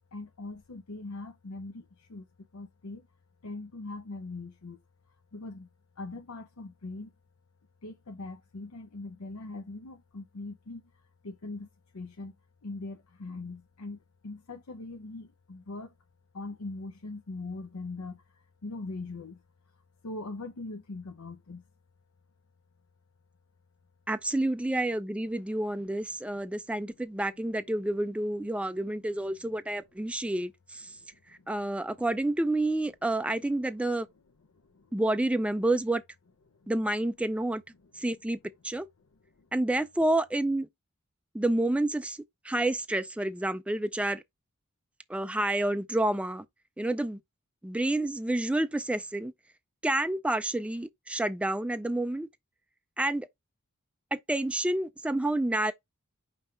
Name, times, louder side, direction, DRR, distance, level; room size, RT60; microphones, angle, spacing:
voice 1, 0.1-2.3 2.5-3.1 3.4-4.8 5.1-5.7 6.0-7.1 7.8-11.7 11.9-12.3 12.6-16.0 16.3-19.4 19.7-21.6 26.3-26.7 29.4-29.5 30.9-31.8 34.5-34.9 36.5-36.7 37.7-38.1 39.0-39.5, left 3 dB, 75° left, 0.7 m, -42 dB
voice 2, 24.1-30.9 31.5-34.1 34.9-36.0 36.7-37.6 38.0-38.4 38.6-38.9 39.5-40.7 41.3-42.2 42.4-44.2 45.1-46.4 46.8-47.2 47.6-49.3 49.8-52.3 53.0-53.3 54.1-55.7, right 1 dB, 5° right, 0.3 m, -29 dB
5.4 x 3.2 x 5.6 m
head